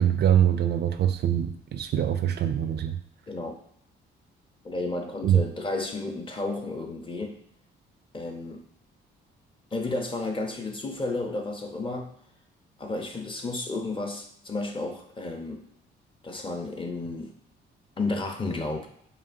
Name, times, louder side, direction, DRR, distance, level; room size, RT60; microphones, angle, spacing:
voice 1, 0.0-2.9 5.2-5.4, right 10 dB, 55° right, 9 dB, 0.4 m, -23 dB
voice 2, 3.3-3.6 4.6-7.4 8.1-8.6 9.7-12.1 12.8-15.6 16.2-17.3 18.0-18.9, left 2 dB, 25° left, 3 dB, 0.7 m, -32 dB
5.3 x 2.4 x 2.6 m, 0.68 s
cardioid pair, 90°, 20 cm